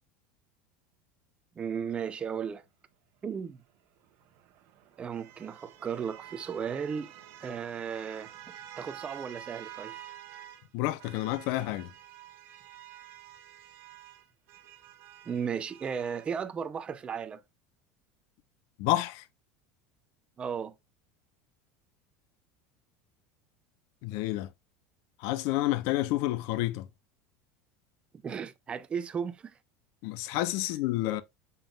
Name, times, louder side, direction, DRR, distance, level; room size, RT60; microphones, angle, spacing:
voice 1, 1.6-2.6 3.2-3.6 5.0-7.1 7.4-8.3 8.8-10.0 15.3-17.4 20.4-20.8 28.2-29.5, right 7 dB, 20° right, 0.6 m, -35 dB
sound 1, 4.0-10.7 11.0-16.3, right 12 dB, 50° right, 1.2 m, -49 dB
voice 2, 10.7-11.9 18.8-19.2 24.0-24.5 25.2-26.9 30.0-31.2, left 16 dB, 60° left, 0.7 m, -29 dB
7.0 x 5.6 x 2.4 m
cardioid pair, 160°, 5 cm